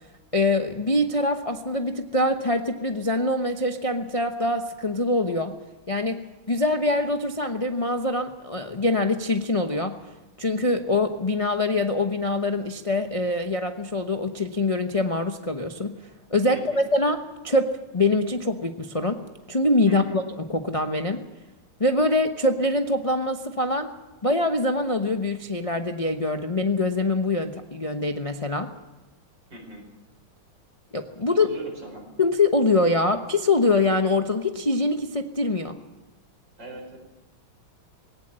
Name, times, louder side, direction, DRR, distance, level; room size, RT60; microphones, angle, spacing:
voice 1, 0.3-5.5 5.9-9.9 10.4-15.9 16.3-19.2 19.5-21.2 21.8-23.9 24.2-28.7 30.9-31.5 32.2-35.8, left 2 dB, 30° left, 5 dB, 0.6 m, -24 dB
voice 2, 16.5-16.8 19.9-20.2 29.5-29.8 31.3-32.1 36.6-37.0, right 1 dB, 55° right, 2 dB, 5.7 m, -41 dB
20.0 x 18.0 x 7.7 m, 1.1 s
omnidirectional pair, 2.3 m